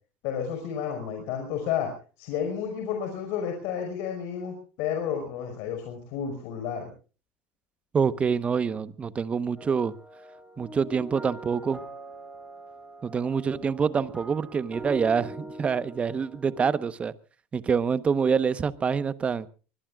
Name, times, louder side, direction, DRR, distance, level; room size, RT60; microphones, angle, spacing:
voice 1, 0.2-1.9 2.2-6.9, left 8 dB, 70° left, 4 dB, 5.4 m, -31 dB
voice 2, 7.9-9.9 10.6-11.8 13.0-17.1 17.5-19.5, right 6 dB, 25° right, 15 dB, 1.1 m, -26 dB
sound 1, 9.6-16.8, right 2 dB, 5° right, 6.3 m, -43 dB
24.5 x 21.0 x 2.4 m, 0.36 s
supercardioid pair, 130°, 5 cm